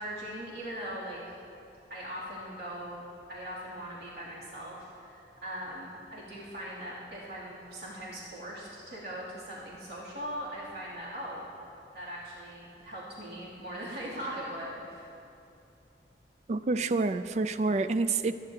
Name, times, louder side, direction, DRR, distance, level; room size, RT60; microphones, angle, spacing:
voice 1, 0.0-1.3 1.9-3.0 3.3-11.5 11.9-15.1, equal, 65° right, -7 dB, 2.8 m, -40 dB
voice 2, 16.5-18.3, right 3 dB, 40° right, 12 dB, 0.3 m, -28 dB
24.0 x 9.6 x 2.9 m, 2.7 s
head